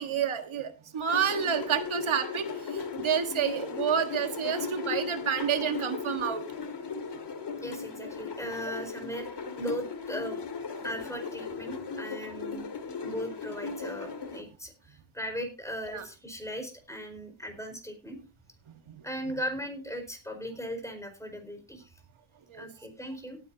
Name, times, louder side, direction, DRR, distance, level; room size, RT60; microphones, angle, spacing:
voice 1, 0.0-6.4 15.9-16.0 18.9-19.0 22.5-22.7, right 8 dB, 85° right, 7 dB, 1.7 m, -29 dB
sound 1, 1.1-14.4, left 5 dB, 60° left, 2.1 m, -37 dB
voice 2, 7.6-9.3 9.6-10.4 10.8-18.2 19.0-21.9 22.6-23.4, equal, 5° left, 5 dB, 4.6 m, -38 dB
18.0 x 9.8 x 2.8 m, 0.29 s
wide cardioid pair, 110°, 47 cm